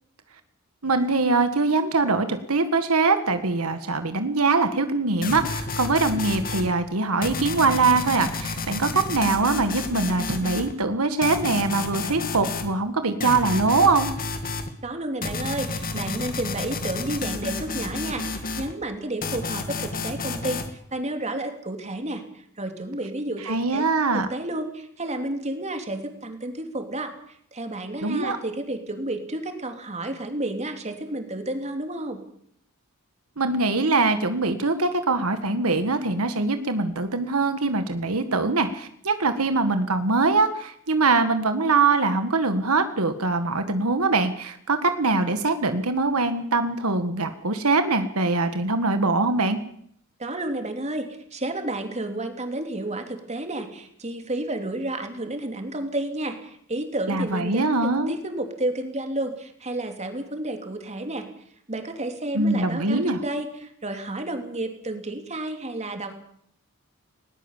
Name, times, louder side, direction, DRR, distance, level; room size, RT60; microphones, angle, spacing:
voice 1, 0.8-14.1 23.4-24.3 28.0-28.4 33.4-49.6 57.1-58.2 62.3-63.2, right 3 dB, 85° right, 9 dB, 1.7 m, -23 dB
sound 1, 5.2-6.7 7.2-10.7 11.2-12.7 13.2-14.7 15.2-18.7 19.2-20.7, left 3 dB, 40° left, 2.3 m, -31 dB
voice 2, 14.8-20.6 20.9-22.2 22.6-23.9 24.1-27.1 27.5-32.2 50.2-61.3 61.7-66.2, right 1 dB, 30° right, 5 dB, 3.0 m, -31 dB
20.0 x 19.0 x 7.4 m, 0.68 s
head